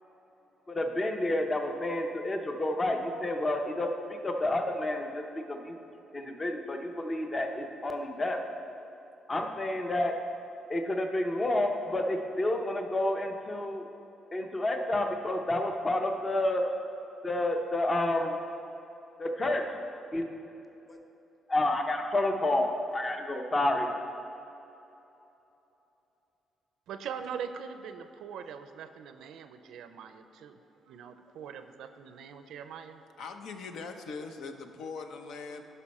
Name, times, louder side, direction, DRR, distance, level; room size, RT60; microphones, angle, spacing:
voice 1, 0.7-5.2 5.5-5.8 6.1-8.4 9.3-10.1 10.7-13.8 14.3-16.6 17.2-18.4 19.2-19.6 20.1-20.2 20.9-21.0 21.5-23.9, left 1 dB, 25° left, 4 dB, 0.7 m, -29 dB
voice 2, 26.9-30.6 30.9-33.0, right 7 dB, 80° right, 9 dB, 0.4 m, -42 dB
voice 3, 33.2-35.6, left 4 dB, 75° left, 6 dB, 0.7 m, -41 dB
11.5 x 5.5 x 4.2 m, 3.0 s
cardioid pair, 90°, 0 cm